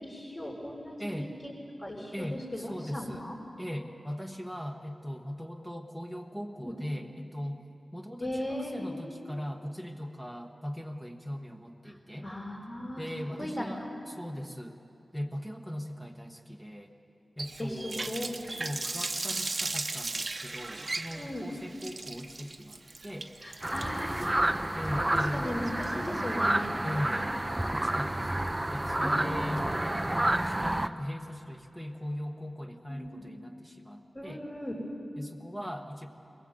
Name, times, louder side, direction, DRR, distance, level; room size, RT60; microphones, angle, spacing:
voice 1, 0.0-1.2 1.4-1.5 1.8-3.3 6.6-6.8 8.2-9.3 11.9-12.0 12.2-13.0 13.4-13.9 17.6-18.6 21.1-21.5 23.4-24.5 24.9-26.7 29.0-29.3 32.9-33.3 34.1-34.8, left 1 dB, 30° left, -6 dB, 3.8 m, -37 dB
voice 2, 1.0-1.3 2.1-3.2 3.6-7.7 7.9-12.3 13.0-14.8 15.1-16.9 17.4-18.1 18.5-23.3 24.7-25.5 26.8-27.3 27.7-29.7 30.4-34.4 35.2-36.1, equal, 5° left, 3 dB, 1.3 m, -39 dB
Water tap faucet, 17.4-26.3, right 3 dB, 40° right, 0.9 m, -37 dB
sound 1, 23.6-30.9, right 1 dB, 15° right, 0.6 m, -29 dB
21.0 x 20.5 x 7.9 m, 2.7 s
wide cardioid pair, 105°, 0 cm